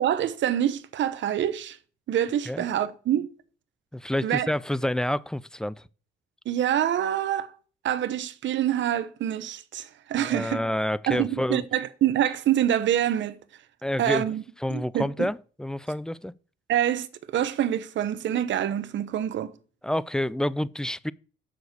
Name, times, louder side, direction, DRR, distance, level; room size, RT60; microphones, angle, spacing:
voice 1, 0.0-1.8 2.1-3.3 4.2-4.5 6.5-7.5 7.8-10.6 11.1-13.4 14.0-14.4 14.7-15.3 16.7-19.5, right 11 dB, 70° right, 0.9 m, -26 dB
voice 2, 3.9-5.8 10.2-11.7 13.8-14.3 14.6-16.3 19.8-21.1, left 1 dB, 5° left, 0.3 m, -28 dB
7.1 x 6.3 x 6.5 m
cardioid pair, 90°, 20 cm